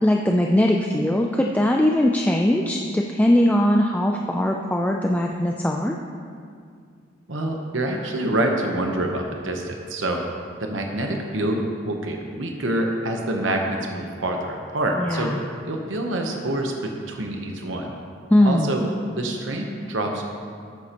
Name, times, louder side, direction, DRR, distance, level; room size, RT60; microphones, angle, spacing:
voice 1, 0.0-6.0 15.0-15.6 18.3-18.7, left 1 dB, 10° left, 1 dB, 0.4 m, -20 dB
voice 2, 7.3-10.2 10.6-15.4 15.6-16.7 17.1-18.0 18.4-18.8 19.2-20.2, right 1 dB, 75° right, 2 dB, 1.0 m, -26 dB
13.5 x 9.4 x 3.0 m, 2.2 s
head